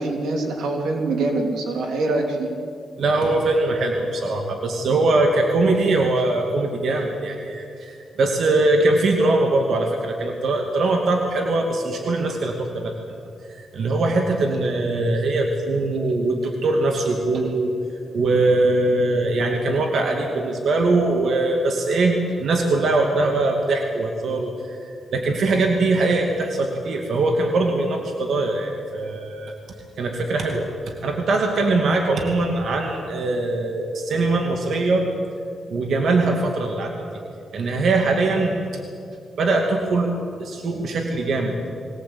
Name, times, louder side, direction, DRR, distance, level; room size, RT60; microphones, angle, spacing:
voice 1, 0.0-2.5, right 2 dB, 90° right, 2 dB, 3.1 m, -24 dB
voice 2, 3.0-12.9 13.5-17.7 18.1-29.5 30.0-35.1 35.7-36.9 37.5-38.8 39.4-40.1 40.4-41.6, right 2 dB, 70° right, 2 dB, 2.4 m, -22 dB
22.5 x 18.0 x 8.7 m, 2.4 s
cardioid pair, 90°, 0 cm